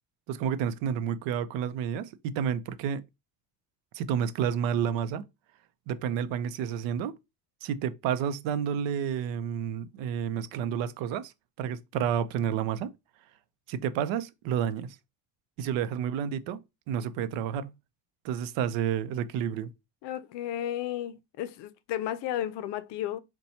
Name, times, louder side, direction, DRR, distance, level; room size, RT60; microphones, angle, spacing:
voice 1, 0.3-3.0 3.9-5.2 5.9-7.2 7.6-11.3 11.6-12.9 13.7-15.0 15.6-16.6 16.9-17.7 18.2-19.7, right 8 dB, 70° right, 0.6 m, -30 dB
voice 2, 20.0-23.2, left 11 dB, 60° left, 0.6 m, -33 dB
4.1 x 2.3 x 4.1 m
cardioid pair, 125°, 48 cm